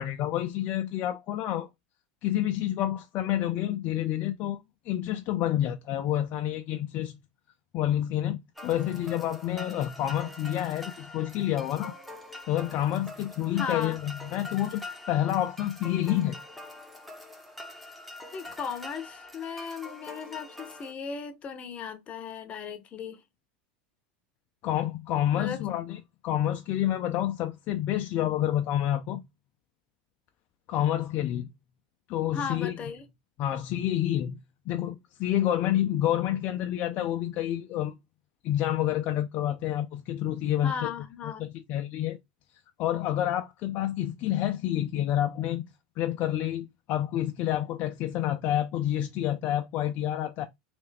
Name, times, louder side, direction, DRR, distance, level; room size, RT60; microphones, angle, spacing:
voice 1, 0.0-1.7 2.2-7.1 7.7-11.9 12.5-16.4 24.6-29.2 30.7-31.5 32.1-32.8 33.4-34.4 34.7-37.9 38.4-40.9 41.4-42.2 42.8-45.7 46.0-50.5, left 12 dB, 50° left, 0.5 m, -28 dB
sound 1, 8.6-20.9, left 2 dB, ahead, 0.9 m, -44 dB
voice 2, 13.5-14.0 18.3-23.2 25.3-25.6 32.3-33.0 40.6-41.5, left 6 dB, 30° left, 0.8 m, -36 dB
3.3 x 2.6 x 3.3 m
supercardioid pair, 110°, 4 cm